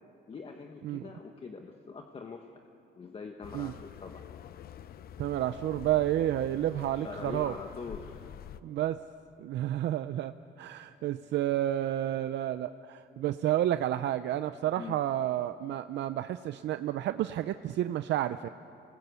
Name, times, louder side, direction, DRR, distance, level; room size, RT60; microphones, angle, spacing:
voice 1, 0.3-2.5 2.9-4.2 6.9-8.2 14.8-15.0, left 4 dB, 30° left, 4 dB, 1.1 m, -43 dB
sound 1, 3.4-8.6, left 10 dB, 50° left, 0.7 m, -47 dB
voice 2, 5.2-7.5 8.6-9.0 9.4-18.5, right 12 dB, 65° right, 11 dB, 0.6 m, -30 dB
28.5 x 20.0 x 8.2 m, 2.7 s
cardioid pair, 155°, 19 cm